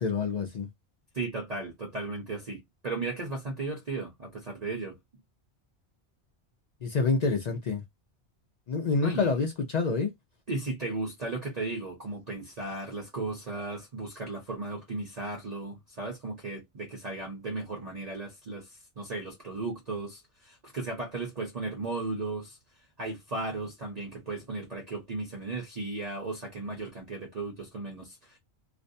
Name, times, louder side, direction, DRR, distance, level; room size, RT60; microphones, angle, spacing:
voice 1, 0.0-0.7 6.8-7.8 8.7-10.1, left 4 dB, 55° left, 0.5 m, -27 dB
voice 2, 1.1-5.0 9.0-9.4 10.5-22.6 23.0-28.4, right 3 dB, 40° right, 0.7 m, -36 dB
2.5 x 2.1 x 2.6 m
omnidirectional pair, 1.1 m